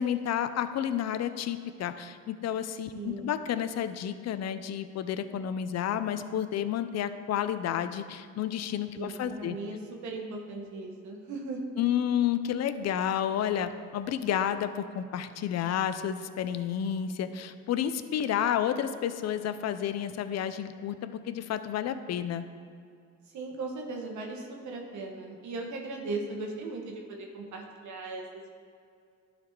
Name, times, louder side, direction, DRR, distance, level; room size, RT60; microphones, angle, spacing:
voice 1, 0.0-9.6 11.8-22.5, left 9 dB, 60° left, 11 dB, 0.5 m, -31 dB
voice 2, 2.9-3.3 8.9-11.6 23.3-28.5, right 3 dB, 70° right, 1 dB, 1.2 m, -38 dB
11.5 x 4.1 x 4.6 m, 2.4 s
cardioid pair, 90°, 30 cm